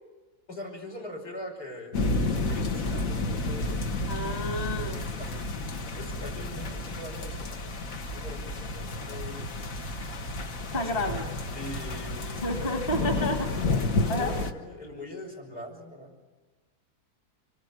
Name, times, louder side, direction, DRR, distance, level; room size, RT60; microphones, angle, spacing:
voice 1, 0.5-1.9 2.3-3.8 5.2-5.5 5.9-7.6 8.1-9.4 9.7-10.0 10.7-11.2 11.5-12.7 13.0-13.1 13.8-16.1, left 1 dB, 75° left, 2 dB, 6.0 m, -42 dB
sound 1, 1.9-14.5, left 2 dB, 55° left, 1.7 m, -31 dB
voice 2, 4.1-5.0 10.7-11.3 12.4-13.5 14.1-14.3, left 1 dB, 35° left, 3 dB, 2.5 m, -30 dB
25.5 x 23.5 x 9.4 m, 1.3 s
omnidirectional pair, 1.8 m